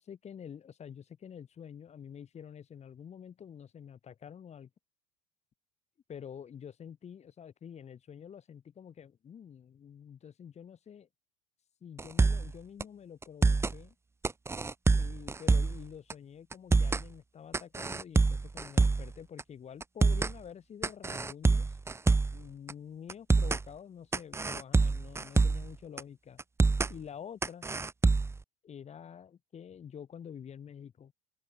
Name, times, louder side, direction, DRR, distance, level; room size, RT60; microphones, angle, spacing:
voice 1, 0.0-4.7 6.1-11.1 11.8-14.0 14.9-21.8 22.3-26.4 26.9-27.7 28.6-31.1, left 8 dB, 35° left, 7.1 m, -48 dB
sound 1, 12.0-12.5 12.8-12.9 13.2-13.8 14.2-15.8 16.1-16.2 16.5-17.1 17.5-19.1 19.4-19.5 19.8-20.3 20.8-22.4 22.7-22.8 23.1-23.6 24.1-25.7 26.0-26.1 26.4-26.9 27.4-28.4, right 3 dB, 15° right, 1.0 m, -26 dB
open air
hypercardioid pair, 70°, 20 cm